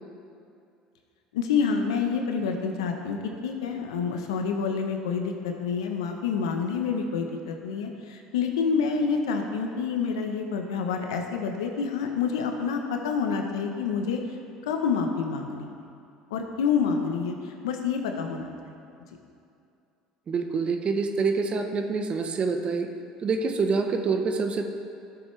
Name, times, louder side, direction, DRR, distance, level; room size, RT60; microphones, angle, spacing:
voice 1, 1.3-14.2 14.7-15.7 16.3-18.7, left 5 dB, 85° left, 3 dB, 0.9 m, -28 dB
voice 2, 20.3-22.9 23.2-24.7, right 4 dB, 40° right, 6 dB, 0.9 m, -26 dB
12.5 x 7.0 x 3.3 m, 2.6 s
hypercardioid pair, 80°, 3 cm